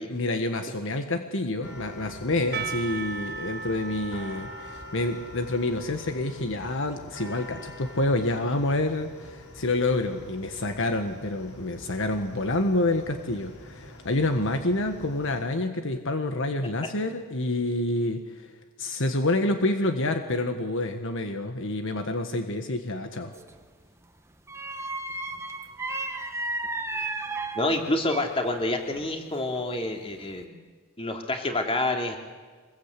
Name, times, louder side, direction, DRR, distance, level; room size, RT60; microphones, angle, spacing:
voice 1, 0.1-18.5 18.8-23.3, left 2 dB, 60° left, 6 dB, 1.5 m, -28 dB
sound 1, 1.6-15.4, left 1 dB, 90° left, 4.8 m, -46 dB
Percussion / Church bell, 2.5-7.3, right 5 dB, 50° right, 1.7 m, -39 dB
sound 2, 23.3-23.7 24.5-28.5 28.9-29.8 30.2-30.4, right 2 dB, 15° right, 1.3 m, -34 dB
voice 2, 27.5-30.5 31.0-32.2, left 2 dB, 25° left, 3 dB, 2.9 m, -28 dB
25.0 x 21.5 x 8.4 m, 1.5 s
head